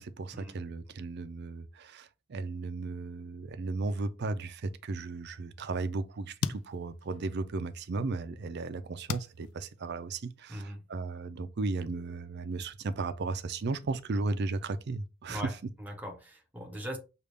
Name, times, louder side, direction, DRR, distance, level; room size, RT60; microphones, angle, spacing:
voice 1, 0.0-15.6, right 3 dB, 50° right, 0.4 m, -35 dB
sound 1, 5.4-5.5 5.9-7.8 8.3-10.4, left 6 dB, 85° left, 0.4 m, -39 dB
voice 2, 10.5-10.8 15.3-15.5 15.8-17.0, equal, 10° right, 0.9 m, -40 dB
6.5 x 2.4 x 3.4 m
head